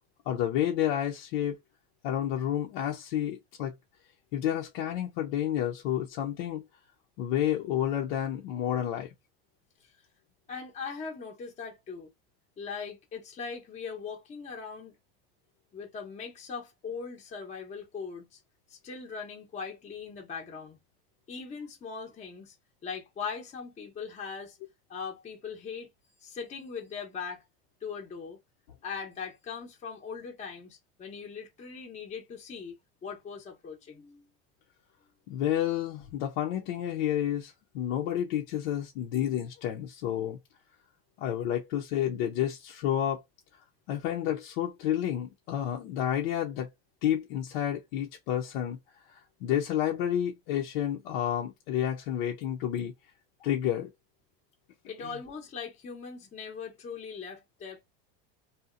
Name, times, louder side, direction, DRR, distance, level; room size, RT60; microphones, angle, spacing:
voice 1, 0.3-1.6 2.0-3.7 4.3-6.6 7.2-9.1 35.3-40.4 41.2-43.2 43.9-46.7 47.0-48.8 49.4-52.9 53.4-53.9 55.0-55.1, left 11 dB, 70° left, 0.8 m, -30 dB
voice 2, 10.5-12.1 12.6-15.0 15.7-18.4 18.7-20.8 21.3-22.5 22.8-24.6 24.9-25.9 26.2-27.4 27.8-28.4 28.8-32.7 33.0-34.3 54.9-57.8, left 5 dB, 20° left, 0.8 m, -40 dB
2.8 x 2.3 x 2.5 m
supercardioid pair, 130°, 31 cm